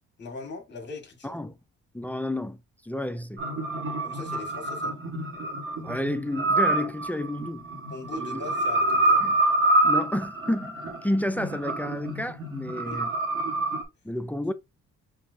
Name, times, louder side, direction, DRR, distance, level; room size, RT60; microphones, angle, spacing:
voice 1, 0.2-1.4 4.0-4.9 7.9-9.2 12.9-13.1, left 3 dB, 35° left, 1.7 m, -40 dB
voice 2, 1.2-1.5 1.9-2.6 2.8-3.4 5.8-7.6 8.2-8.4 9.2-9.3 9.8-10.8 11.0-13.1 14.0-14.5, left 1 dB, 5° left, 0.3 m, -30 dB
sound 1, 3.4-13.8, right 2 dB, 45° right, 1.5 m, -27 dB
5.2 x 2.8 x 2.6 m
cardioid pair, 90°, 30 cm